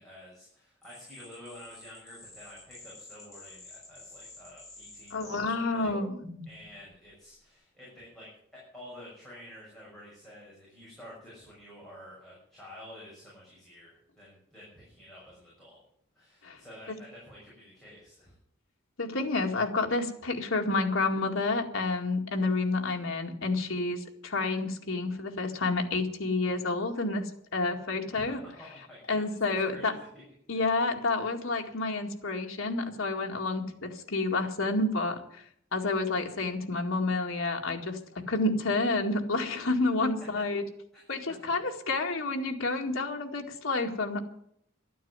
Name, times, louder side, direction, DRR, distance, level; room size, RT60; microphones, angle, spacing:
voice 1, 0.0-6.0 6.5-15.8 16.1-18.3 28.1-30.1 30.5-30.8 41.3-41.4, equal, ahead, -7 dB, 6.4 m, -50 dB
sound 1, 0.8-6.7, left 2 dB, 15° left, 6.5 m, -48 dB
voice 2, 5.1-6.1 16.4-16.6 19.0-28.4 29.1-29.9 30.5-35.4 35.7-40.6 41.1-44.2, left 3 dB, 70° left, 3 dB, 2.0 m, -29 dB
12.5 x 9.2 x 9.6 m, 0.70 s
head